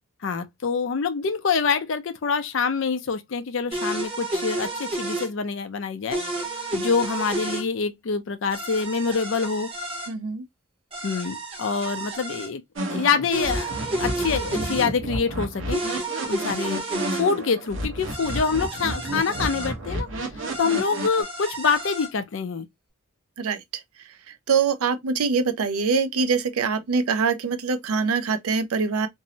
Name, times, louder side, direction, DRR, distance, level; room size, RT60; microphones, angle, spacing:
voice 1, 0.2-6.2 6.7-9.7 11.0-12.6 12.9-13.7 14.0-15.8 16.3-16.8 17.1-20.1 20.6-22.7, left 5 dB, 60° left, 0.4 m, -25 dB
sound 1, 3.7-5.3 6.1-7.6 8.5-10.1 10.9-12.5 13.3-14.9 15.7-17.2 18.1-19.7 20.5-22.1, right 2 dB, 25° right, 0.8 m, -31 dB
voice 2, 10.1-10.4 23.4-23.6 24.5-29.1, right 5 dB, 80° right, 0.4 m, -24 dB
sound 2, 12.8-21.2, right 1 dB, 60° right, 0.8 m, -31 dB
2.6 x 2.0 x 2.6 m
head